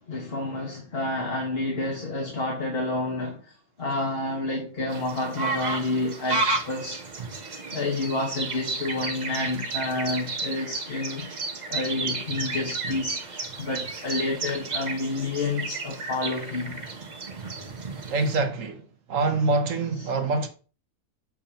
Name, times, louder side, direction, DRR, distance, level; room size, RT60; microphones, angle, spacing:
voice 1, 0.1-3.5 3.8-7.0 7.7-11.2 11.7-16.7 20.0-20.1, left 2 dB, 45° left, 1.6 m, -29 dB
sound 1, 4.9-18.4, right 3 dB, 35° right, 0.8 m, -32 dB
voice 2, 18.1-18.8 19.1-20.5, right 3 dB, 65° right, 1.3 m, -25 dB
7.1 x 6.5 x 2.9 m
omnidirectional pair, 1.5 m